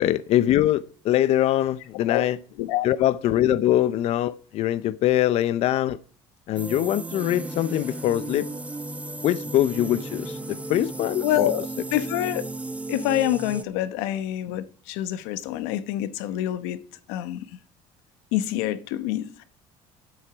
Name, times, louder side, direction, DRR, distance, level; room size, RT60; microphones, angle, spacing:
voice 1, 0.0-2.4 2.8-6.0 6.5-8.5 9.2-10.4 10.7-11.5, left 13 dB, 60° left, 0.6 m, -23 dB
sound 1, 6.6-13.6, right 2 dB, 10° right, 0.6 m, -34 dB
voice 2, 11.2-12.4 12.9-16.8 17.1-17.4 18.3-19.3, left 13 dB, 90° left, 1.0 m, -26 dB
8.8 x 8.1 x 6.1 m
cardioid pair, 110°, 12 cm